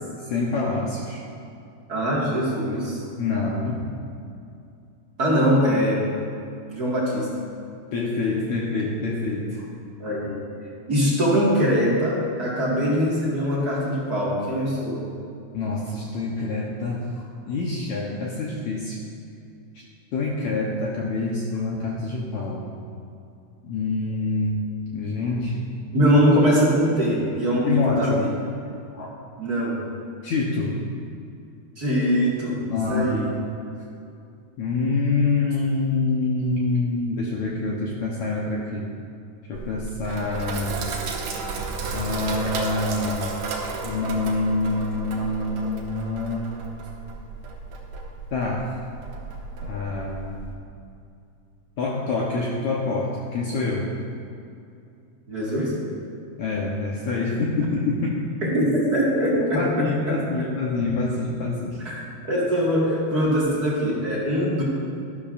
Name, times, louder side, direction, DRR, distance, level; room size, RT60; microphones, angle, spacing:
voice 1, 0.2-1.2 3.2-3.9 7.9-9.7 15.5-19.0 20.1-22.7 23.6-24.6 24.9-25.7 27.6-28.2 28.9-29.1 30.2-30.8 32.7-33.3 34.6-38.9 39.5-40.8 41.9-43.3 43.8-46.4 48.3-48.7 49.6-50.5 51.8-53.9 56.4-58.2 59.3-61.8, left 3 dB, 85° left, -3 dB, 1.6 m, -26 dB
voice 2, 1.9-3.0 5.2-6.0 6.7-7.3 10.0-10.4 10.9-15.0 25.9-28.3 29.4-29.8 31.8-33.3 55.3-55.7 58.4-60.2 61.8-62.0 62.3-64.6, equal, 40° right, -7 dB, 1.4 m, -22 dB
Sink (filling or washing), 39.5-50.5, right 4 dB, 70° right, 1.7 m, -33 dB
12.5 x 12.0 x 2.5 m, 2.5 s
omnidirectional pair, 4.5 m